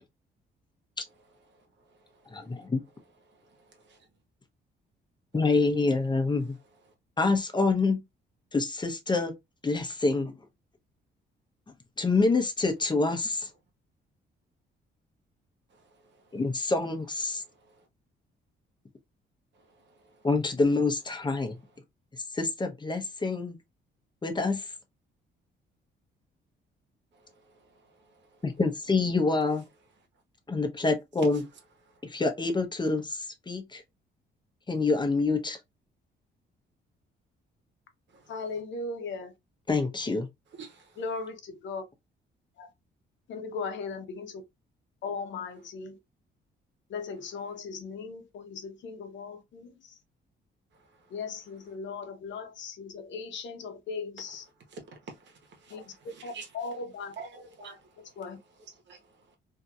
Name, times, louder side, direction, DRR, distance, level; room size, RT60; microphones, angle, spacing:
voice 1, 2.3-2.8 5.3-6.6 7.2-8.0 8.5-9.3 9.6-10.3 12.0-13.5 16.3-17.4 20.2-21.6 22.3-23.6 24.2-24.6 28.4-29.6 30.5-31.4 32.0-33.8 34.7-35.6 39.7-40.3, left 3 dB, 20° left, 0.8 m, -26 dB
voice 2, 38.3-39.3 41.0-41.8 42.6-42.7 43.3-44.3 45.0-45.9 46.9-49.7 51.1-54.4 55.7-55.8 56.2-57.1 58.2-58.4, left 4 dB, 70° left, 0.8 m, -37 dB
voice 3, 40.6-41.0 54.7-54.8 55.1-56.7 57.2-57.8 58.6-59.0, right 4 dB, 65° right, 1.2 m, -47 dB
2.8 x 2.7 x 2.4 m
cardioid pair, 90°, 20 cm